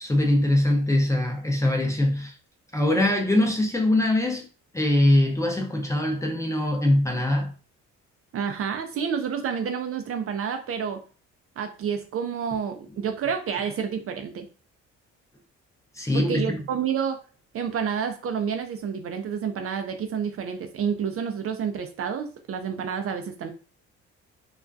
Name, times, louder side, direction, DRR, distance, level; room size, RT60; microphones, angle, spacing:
voice 1, 0.0-2.3 2.7-4.5 4.7-7.5 16.0-16.6, left 1 dB, 10° left, 0.6 m, -22 dB
voice 2, 8.3-11.0 11.6-14.5 16.1-17.2 17.5-23.5, right 7 dB, 50° right, 0.4 m, -29 dB
2.3 x 2.2 x 2.5 m
cardioid pair, 90°, 30 cm